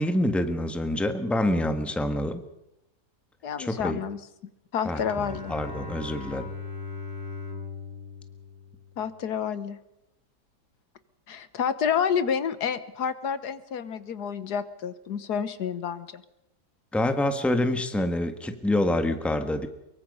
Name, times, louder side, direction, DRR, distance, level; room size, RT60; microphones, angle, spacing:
voice 1, 0.0-2.4 3.6-4.0 4.8-5.0 5.3-6.5 16.9-19.7, left 1 dB, ahead, 8 dB, 1.3 m, -26 dB
voice 2, 3.4-4.2 4.7-5.5 9.0-9.8 11.3-16.2, left 7 dB, 75° left, 13 dB, 1.6 m, -29 dB
Bowed string instrument, 4.9-9.3, left 4 dB, 25° right, 3.9 m, -39 dB
24.0 x 23.0 x 5.5 m, 0.88 s
omnidirectional pair, 1.8 m